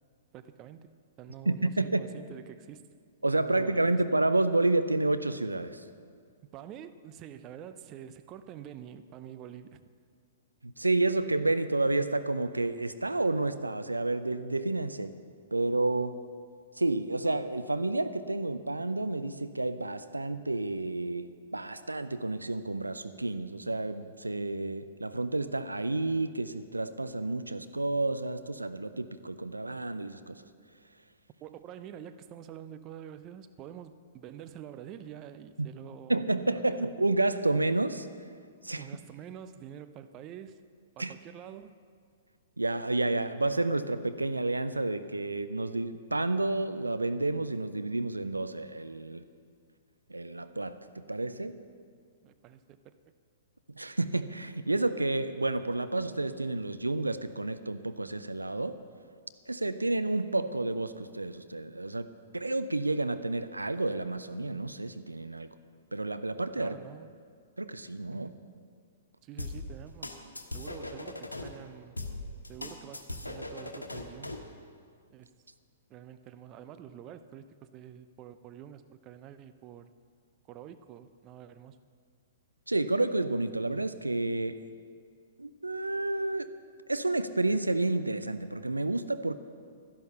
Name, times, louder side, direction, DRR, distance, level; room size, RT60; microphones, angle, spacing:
voice 1, 0.3-1.7 2.0-2.9 3.4-4.0 6.4-9.9 31.4-36.2 36.5-36.9 38.7-40.6 41.0-41.7 52.2-53.0 66.6-67.2 68.1-68.4 69.2-70.2 70.5-72.0 72.5-74.4 75.1-75.3 75.9-79.9 80.5-81.8, right 10 dB, 30° right, 11 dB, 0.6 m, -47 dB
voice 2, 1.5-2.0 3.2-5.8 10.6-15.2 15.5-16.2 16.8-30.4 35.6-35.7 36.1-38.1 38.6-38.9 41.0-41.1 42.6-49.2 50.1-51.6 53.7-58.8 59.5-65.5 65.9-66.7 67.6-68.3 82.7-84.6 85.4-86.5 86.9-89.3, right 2 dB, 85° right, 12 dB, 0.6 m, -30 dB
sound 1, 69.4-71.5 72.0-74.5, left 2 dB, 85° left, 1.3 m, -39 dB
13.0 x 11.0 x 6.7 m, 2.1 s
figure-of-eight pair, 115°, 0 cm